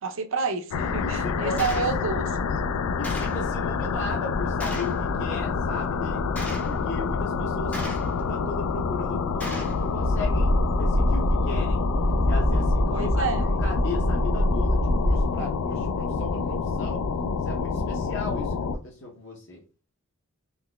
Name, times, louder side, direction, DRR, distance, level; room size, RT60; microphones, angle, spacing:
voice 1, 0.0-2.4 12.9-13.5, right 4 dB, 65° right, 8 dB, 0.5 m, -29 dB
sound 1, 0.7-18.8, left 5 dB, 85° left, 0.3 m, -28 dB
voice 2, 1.0-1.6 3.0-6.2 6.6-11.9 12.2-13.2 13.6-17.0 17.4-19.6, left 3 dB, 55° left, -1 dB, 0.8 m, -36 dB
Gunshot gunfire, 1.6-1.9 3.0-3.4 4.6-5.0 6.4-6.8 7.7-8.2 9.4-9.8, equal, 5° left, 0.5 m, -35 dB
sound 2, 10.0-15.3, equal, 85° right, 1.1 m, -24 dB
3.8 x 3.0 x 2.2 m, 0.34 s
head